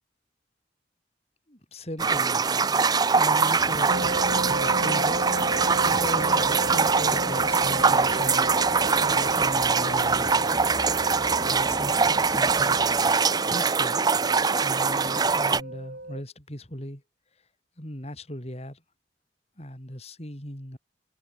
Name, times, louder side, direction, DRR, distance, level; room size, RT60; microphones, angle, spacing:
voice 1, 1.5-8.5 9.0-10.5 11.4-12.8 13.5-14.1 14.6-17.0 17.8-18.8 19.6-20.8, equal, 35° left, 6.2 m, -38 dB
sound 1, 2.0-15.6, right 5 dB, 20° right, 0.5 m, -23 dB
sound 2, 3.6-13.2, equal, 5° right, 1.8 m, -40 dB
sound 3, 3.9-16.2, right 1 dB, 65° right, 7.8 m, -34 dB
head